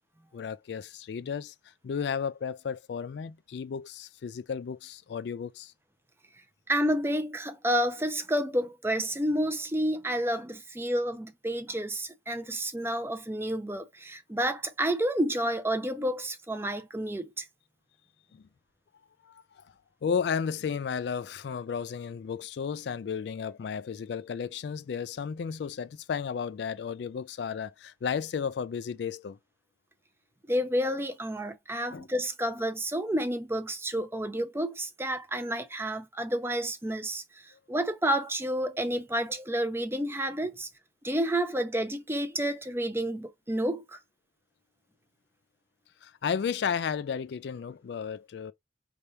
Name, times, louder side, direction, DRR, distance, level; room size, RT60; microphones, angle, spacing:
voice 1, 0.3-1.5 1.8-5.7 18.3-18.4 19.3-19.6 20.0-29.4 31.9-32.1 46.0-48.5, left 6 dB, 65° left, 0.3 m, -33 dB
voice 2, 6.7-17.5 30.5-40.7 41.0-44.0, equal, 15° right, 0.5 m, -30 dB
4.5 x 3.4 x 2.7 m
head